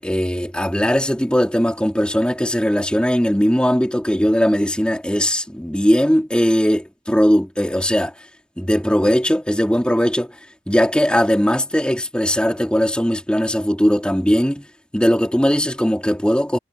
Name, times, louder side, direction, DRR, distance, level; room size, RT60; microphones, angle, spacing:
voice 1, 0.0-8.1 8.6-10.4 10.7-14.7 14.9-16.6, equal, 5° left, 2.3 m, -19 dB
head